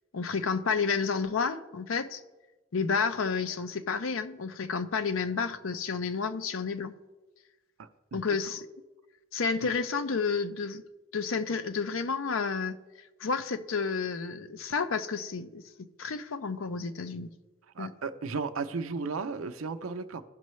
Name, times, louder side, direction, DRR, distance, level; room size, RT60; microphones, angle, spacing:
voice 1, 0.1-2.2 2.7-7.0 8.1-8.7 9.3-10.8 11.1-12.8 13.2-17.3 17.8-17.9, left 5 dB, 80° left, 10 dB, 0.6 m, -30 dB
voice 2, 7.8-8.2 9.6-9.7 17.7-20.2, right 4 dB, 90° right, 8 dB, 0.6 m, -35 dB
16.0 x 5.5 x 3.1 m, 1.2 s
head